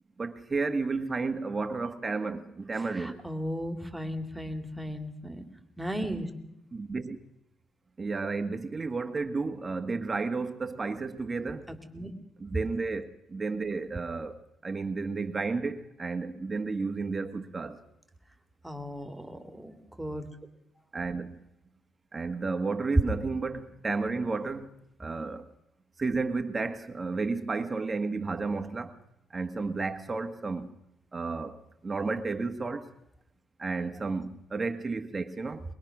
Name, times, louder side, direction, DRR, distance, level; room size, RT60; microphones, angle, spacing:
voice 1, 0.2-3.2 6.7-7.2 8.0-11.7 12.4-17.8 20.9-21.4 22.1-24.7 25.0-25.5 26.0-28.9 29.3-30.7 31.1-32.9 33.6-35.6, right 4 dB, 30° right, 1.5 m, -32 dB
voice 2, 3.0-5.4 5.8-6.3 11.7-12.1 18.6-20.2, equal, 5° right, 3.0 m, -36 dB
23.0 x 22.5 x 6.2 m
cardioid pair, 90°, 0 cm